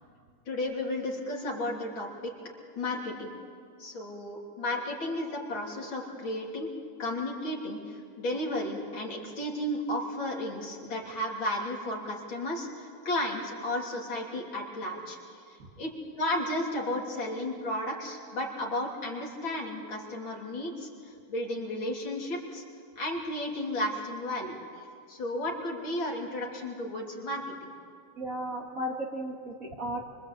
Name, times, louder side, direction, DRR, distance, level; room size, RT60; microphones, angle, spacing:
voice 1, 0.5-2.3 2.8-3.3 3.8-6.7 7.0-15.2 15.5-15.9 16.2-22.6 23.0-27.7, left 1 dB, 60° left, -1 dB, 3.9 m, -33 dB
voice 2, 28.2-30.0, right 1 dB, 40° right, 1 dB, 2.4 m, -34 dB
25.5 x 25.0 x 8.2 m, 2.3 s
omnidirectional pair, 2.4 m